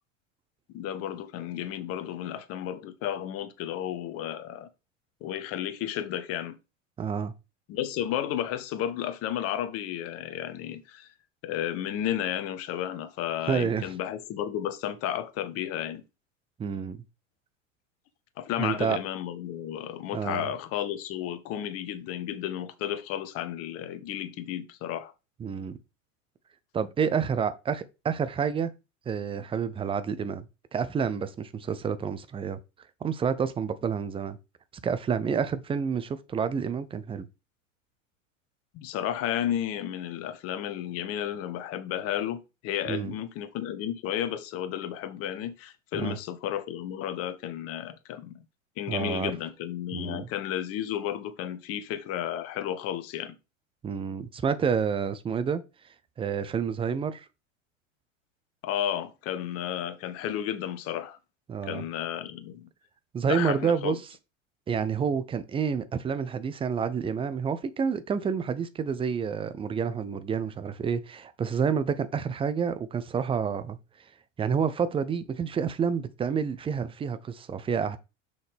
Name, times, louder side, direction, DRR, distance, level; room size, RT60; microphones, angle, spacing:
voice 1, 0.7-4.7 5.2-6.6 7.7-11.1 11.4-16.0 18.4-25.1 38.7-48.4 48.8-53.4 58.6-61.2 61.6-62.7 63.3-64.0, left 11 dB, 35° left, 1.0 m, -33 dB
voice 2, 7.0-7.3 13.5-13.9 16.6-17.0 18.6-19.0 20.1-20.5 25.4-25.8 26.7-28.7 29.1-30.5 30.7-32.6 33.0-34.4 34.8-37.3 42.9-43.1 45.9-46.2 48.9-49.3 49.9-50.3 53.8-55.6 56.2-57.2 61.5-61.8 63.1-64.0 64.7-73.8 74.4-78.0, right 6 dB, 15° right, 0.6 m, -29 dB
6.4 x 5.6 x 3.4 m
figure-of-eight pair, 85°, 39 cm